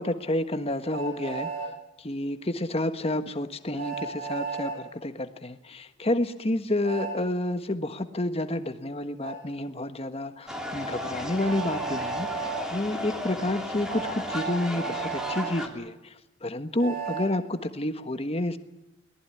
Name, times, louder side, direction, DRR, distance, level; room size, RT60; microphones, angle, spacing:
voice 1, 0.0-1.5 2.0-16.1 16.4-18.6, left 1 dB, 30° left, 9 dB, 1.5 m, -30 dB
Train, 0.9-1.7 3.7-4.8 6.8-7.2 9.2-9.4 11.4-12.6 13.9-15.5 16.8-17.3, right 5 dB, 50° right, 7.9 m, -34 dB
sound 1, 10.5-15.7, left 1 dB, 5° right, 3.1 m, -35 dB
22.5 x 18.5 x 9.9 m, 0.90 s
head